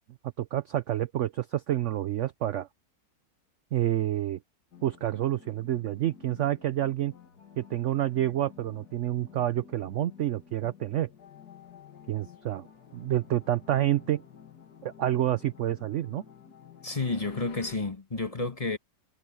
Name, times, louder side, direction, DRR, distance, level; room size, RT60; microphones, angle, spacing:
voice 1, 0.4-2.7 3.7-4.4 4.8-7.1 7.6-11.1 12.1-12.7 12.9-14.2 14.8-16.2, right 13 dB, 75° right, 0.6 m, -28 dB
sound 1, 4.7-17.8, left 7 dB, 65° left, 2.3 m, -51 dB
voice 2, 16.8-18.8, left 3 dB, 20° left, 1.4 m, -31 dB
omnidirectional pair, 1.9 m